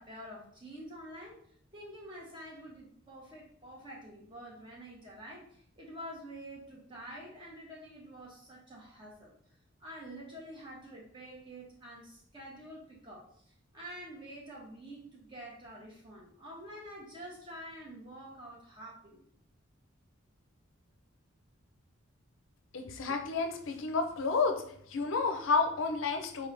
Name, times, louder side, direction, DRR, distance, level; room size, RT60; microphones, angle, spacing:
voice 1, 0.0-1.4 1.7-9.3 9.8-13.4 13.7-19.2, equal, 25° right, -3 dB, 1.2 m, -47 dB
voice 2, 22.7-24.6 24.9-26.5, left 4 dB, 65° left, 6 dB, 0.5 m, -30 dB
4.3 x 3.5 x 3.3 m, 0.63 s
head